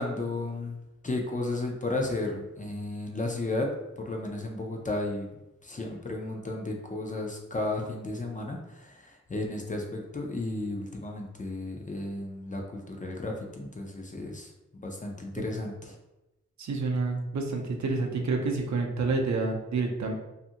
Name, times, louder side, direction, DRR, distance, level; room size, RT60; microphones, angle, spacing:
voice 1, 0.0-3.7 4.0-5.3 5.6-16.0, left 2 dB, 25° left, 1 dB, 0.4 m, -34 dB
voice 2, 16.6-20.1, right 3 dB, 65° right, 2 dB, 0.5 m, -28 dB
2.5 x 2.4 x 2.7 m, 0.96 s
wide cardioid pair, 110°, 31 cm